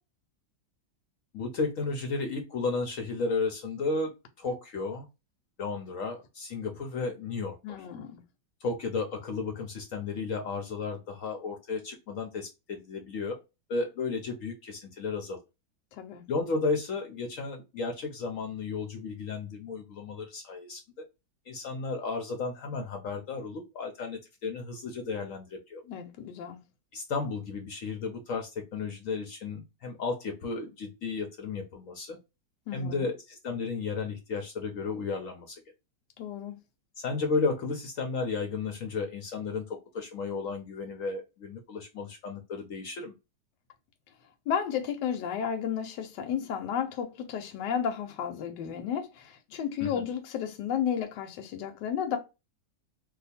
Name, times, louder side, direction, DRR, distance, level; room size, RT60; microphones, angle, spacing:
voice 1, 1.3-4.1 4.4-5.1 5.6-7.9 8.6-13.4 13.7-15.4 16.3-20.8 21.5-25.8 26.9-32.2 32.7-35.6 37.0-43.1 49.8-50.1, left 4 dB, 65° left, 0.9 m, -33 dB
voice 2, 7.6-8.2 15.9-16.2 25.9-26.6 32.7-33.1 36.2-36.6 44.5-52.2, left 8 dB, 80° left, 1.3 m, -33 dB
2.7 x 2.3 x 4.1 m
omnidirectional pair, 1.8 m